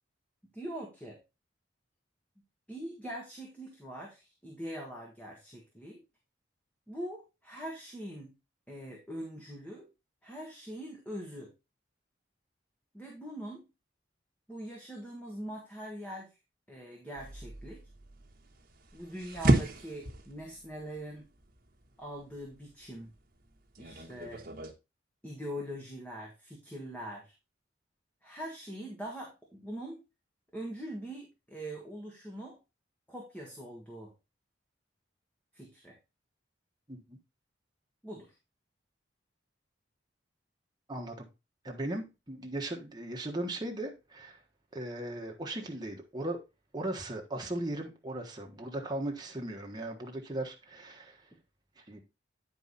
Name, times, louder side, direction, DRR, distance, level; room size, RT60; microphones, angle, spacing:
voice 1, 0.5-1.2 2.7-6.0 6.9-8.3 8.7-9.9 10.2-11.5 12.9-13.7 14.5-16.3 16.7-17.8 18.9-21.3 22.0-23.1 23.8-24.5 25.2-27.3 28.2-30.0 30.5-32.6 33.1-34.1 35.5-36.0 38.0-38.3, equal, 10° left, 1.5 m, -42 dB
sound 1, 17.2-24.7, right 1 dB, 50° right, 1.3 m, -34 dB
voice 2, 40.9-41.3 41.6-44.4 44.7-46.4 46.7-51.2 51.8-52.0, right 1 dB, 20° right, 1.4 m, -37 dB
9.3 x 4.8 x 4.1 m
head